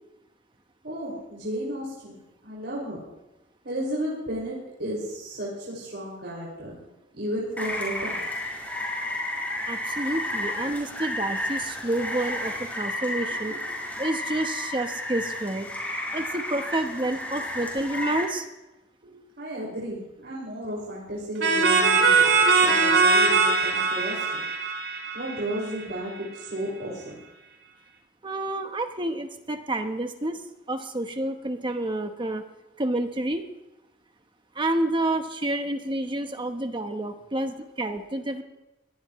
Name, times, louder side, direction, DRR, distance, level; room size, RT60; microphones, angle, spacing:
voice 1, 0.8-3.0 3.6-6.8 7.1-8.3 13.3-13.6 19.0-24.4 25.1-27.2, right 1 dB, 65° right, -6 dB, 5.8 m, -33 dB
Rain, 7.6-18.2, left 1 dB, 10° left, 5.3 m, -32 dB
voice 2, 9.7-13.5 14.0-15.7 16.1-18.5 28.2-30.4 30.7-32.4 32.8-33.5 34.5-38.4, right 1 dB, 25° right, 6 dB, 1.1 m, -29 dB
sound 1, 21.4-26.0, right 4 dB, 85° right, 3.6 m, -21 dB
22.5 x 19.0 x 3.2 m, 0.99 s
head